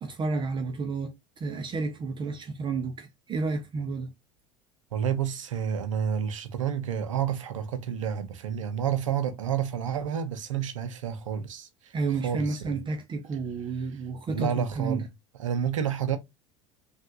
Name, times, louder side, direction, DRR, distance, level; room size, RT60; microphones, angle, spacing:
voice 1, 0.0-4.1 11.9-15.1, right 4 dB, 30° right, 0.6 m, -31 dB
voice 2, 4.9-11.9 12.2-12.7 14.3-15.0 15.4-16.2, right 8 dB, 85° right, 0.6 m, -30 dB
3.3 x 2.5 x 2.7 m
hypercardioid pair, 75°, 16 cm